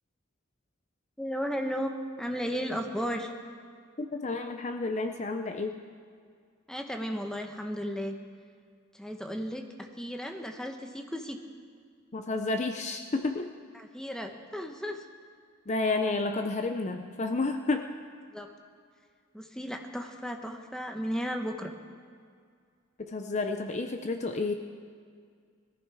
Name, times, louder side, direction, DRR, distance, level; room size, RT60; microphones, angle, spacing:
voice 1, 1.2-3.3 6.7-8.2 8.9-11.4 13.7-15.1 18.3-18.5 19.3-21.7, equal, 5° left, 4 dB, 1.0 m, -34 dB
voice 2, 4.0-5.8 12.1-13.5 15.7-17.9 23.0-24.5, left 3 dB, 35° left, 6 dB, 0.6 m, -30 dB
20.5 x 14.0 x 4.8 m, 2.1 s
head